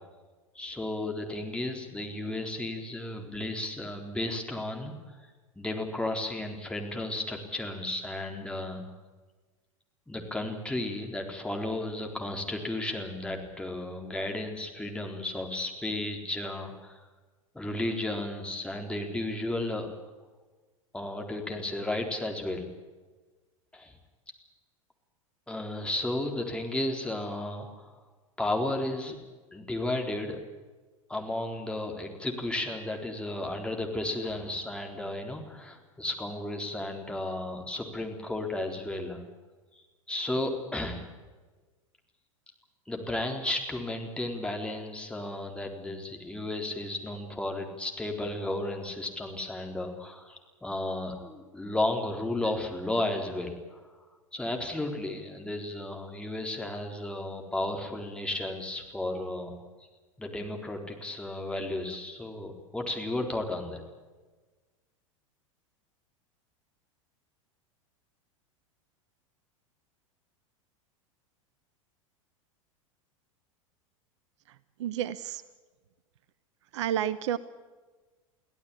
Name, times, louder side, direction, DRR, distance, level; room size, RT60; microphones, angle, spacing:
voice 1, 0.5-5.3 5.6-8.8 10.1-17.0 17.5-19.9 20.9-22.7 23.7-23.9 25.5-28.0 28.4-29.2 29.5-30.4 31.1-39.2 40.1-41.0 42.9-53.8 54.3-59.6 60.2-63.8, left 1 dB, 5° left, 2 dB, 4.0 m, -33 dB
voice 2, 74.5-75.4 76.7-77.4, right 10 dB, 60° right, 16 dB, 0.9 m, -31 dB
24.0 x 16.5 x 8.7 m, 1.3 s
figure-of-eight pair, 90°, 17 cm